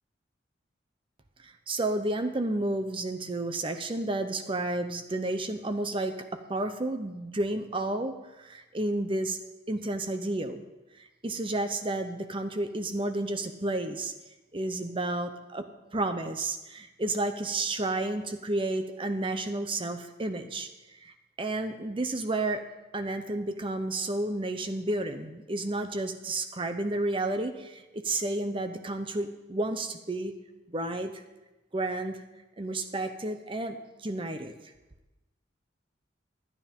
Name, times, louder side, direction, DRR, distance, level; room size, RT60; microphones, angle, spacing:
voice 1, 1.4-9.4 9.7-10.6 11.0-14.1 14.5-15.7 15.9-20.7 21.0-22.6 22.9-30.3 30.7-31.2 31.7-32.2 32.6-34.5, right 2 dB, 25° right, 8 dB, 0.8 m, -31 dB
11.5 x 9.7 x 5.4 m, 1.0 s
head